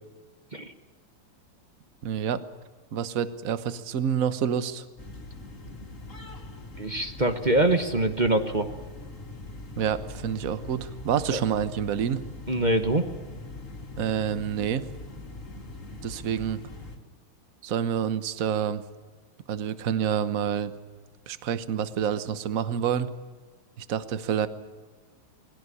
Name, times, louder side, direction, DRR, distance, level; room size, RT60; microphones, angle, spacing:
voice 1, 2.0-2.4 2.9-4.9 9.8-12.2 14.0-14.9 16.0-16.6 17.6-18.8 19.5-20.7 21.3-23.1 23.8-24.5, right 8 dB, 50° right, 13 dB, 1.2 m, -28 dB
sound 1, 5.0-17.0, left 2 dB, 35° left, 3.0 m, -42 dB
voice 2, 6.8-8.7 11.3-11.4 12.5-13.0, right 2 dB, 30° right, 8 dB, 1.0 m, -24 dB
21.5 x 16.5 x 9.8 m, 1.4 s
omnidirectional pair, 2.4 m